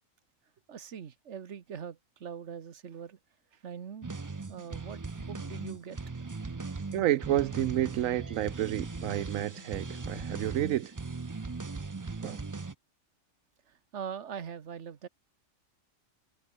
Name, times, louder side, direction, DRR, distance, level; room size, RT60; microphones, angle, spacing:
voice 1, 0.7-3.2 3.5-4.1 4.5-6.0 13.7-15.1, right 7 dB, 65° right, 1.5 m, -42 dB
sound 1, 4.0-12.7, right 4 dB, 25° right, 0.4 m, -39 dB
voice 2, 6.9-10.9 12.2-12.4, right 13 dB, 85° right, 1.0 m, -30 dB
Bowed string instrument, 7.5-10.9, left 3 dB, 70° left, 4.4 m, -56 dB
omnidirectional pair, 1.3 m